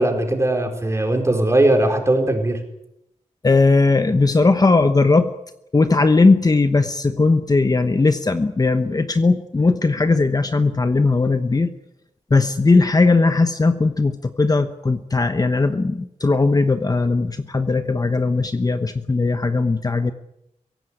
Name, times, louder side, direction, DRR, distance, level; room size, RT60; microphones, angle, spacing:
voice 1, 0.0-2.6, right 1 dB, 20° right, 3 dB, 4.7 m, -19 dB
voice 2, 3.4-5.3 5.7-11.7 12.3-20.1, left 3 dB, 30° left, 9 dB, 1.0 m, -18 dB
23.5 x 17.0 x 9.9 m, 0.84 s
wide cardioid pair, 140°, 13 cm